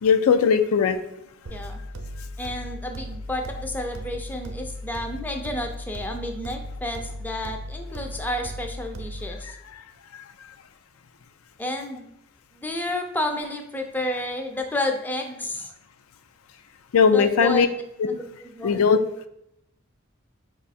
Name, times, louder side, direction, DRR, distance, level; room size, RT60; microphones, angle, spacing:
voice 1, 0.0-1.0 16.9-17.7 18.0-18.1 18.6-19.0, left 6 dB, 85° left, 8 dB, 0.4 m, -18 dB
sound 1, 1.5-9.5, equal, 75° right, 0.6 m, -37 dB
voice 2, 2.4-9.6 11.6-12.1 12.5-15.7 17.1-17.8 18.1-18.8, left 1 dB, 10° left, 3 dB, 0.4 m, -31 dB
5.4 x 2.4 x 4.0 m, 0.82 s
head